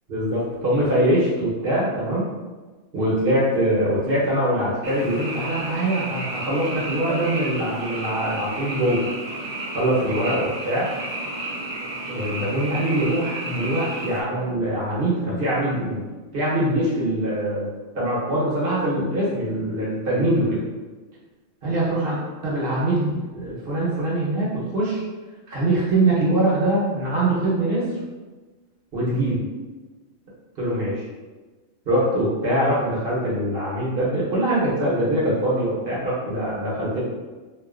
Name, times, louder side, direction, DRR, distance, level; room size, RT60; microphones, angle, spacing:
voice 1, 0.1-2.2 2.9-9.1 9.7-10.9 12.1-16.0 16.3-17.7 17.9-20.6 21.6-22.2 22.4-25.0 25.5-27.9 28.9-29.4 30.6-31.0 31.9-37.0, right 1 dB, 50° right, -7 dB, 1.1 m, -23 dB
Frog, 4.8-14.2, right 2 dB, 80° right, 0.4 m, -32 dB
2.6 x 2.4 x 2.4 m, 1.3 s
omnidirectional pair, 1.3 m